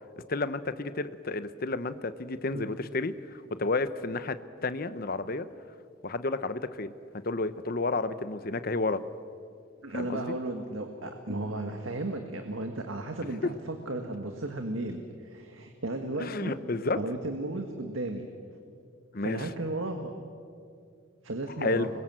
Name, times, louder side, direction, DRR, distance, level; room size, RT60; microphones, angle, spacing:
voice 1, 0.3-5.5 6.0-6.9 7.2-9.0 9.9-10.2 13.4-13.5 16.2-17.0 19.1-19.5 21.6-21.9, left 3 dB, 50° left, 12 dB, 0.9 m, -31 dB
voice 2, 9.8-16.5 17.0-18.3 19.2-20.1 21.2-21.9, right 2 dB, 90° right, 5 dB, 1.7 m, -34 dB
26.5 x 22.5 x 7.6 m, 2.3 s
head